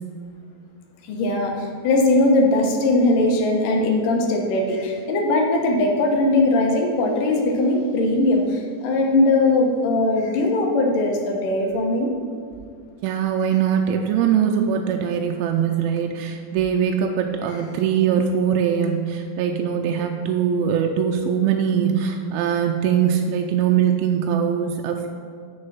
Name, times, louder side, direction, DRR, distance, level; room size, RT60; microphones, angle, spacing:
voice 1, 1.0-12.1, left 2 dB, 70° left, 1 dB, 2.5 m, -20 dB
voice 2, 13.0-25.1, right 8 dB, 85° right, 3 dB, 2.4 m, -22 dB
6.7 x 6.3 x 5.6 m, 2.2 s
omnidirectional pair, 4.3 m